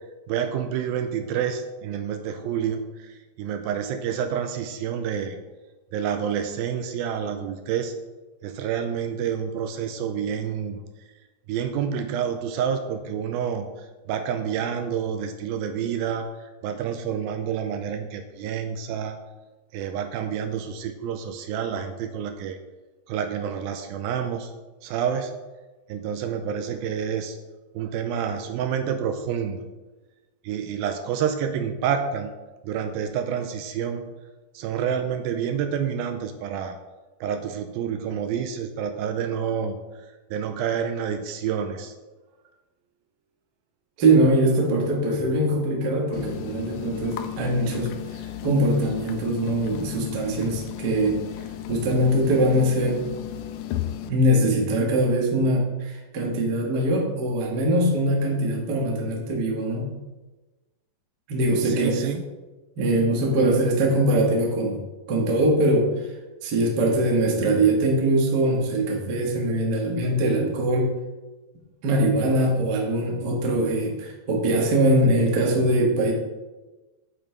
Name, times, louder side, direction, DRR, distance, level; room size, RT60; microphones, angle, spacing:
voice 1, 0.3-5.4 5.9-7.9 8.4-10.8 11.5-13.7 14.1-19.2 19.7-22.6 23.1-24.5 24.8-25.4 25.9-27.4 27.7-29.6 30.4-32.3 32.6-34.1 34.5-36.8 37.2-39.8 40.3-41.9 61.6-62.2, right 8 dB, 80° right, 7 dB, 2.3 m, -28 dB
voice 2, 44.0-47.9 48.4-51.2 51.7-53.0 54.1-59.9 61.3-62.0 62.8-64.8 65.1-65.9 66.4-70.9 71.8-76.1, right 1 dB, 50° right, -1 dB, 1.2 m, -22 dB
sound 1, 46.1-54.1, left 12 dB, 90° left, 1.8 m, -35 dB
8.8 x 8.7 x 3.4 m, 1.2 s
omnidirectional pair, 4.4 m